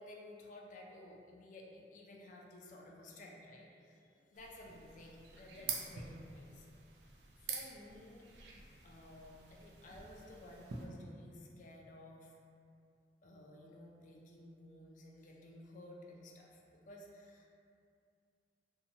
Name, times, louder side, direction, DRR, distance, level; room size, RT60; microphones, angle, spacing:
voice 1, 0.0-6.7 7.4-8.3 8.8-12.4 13.2-17.5, left 1 dB, 45° left, -1 dB, 0.3 m, -54 dB
sound 1, 4.3-10.9, right 5 dB, 70° right, 0.4 m, -47 dB
2.7 x 2.1 x 2.7 m, 2.4 s
head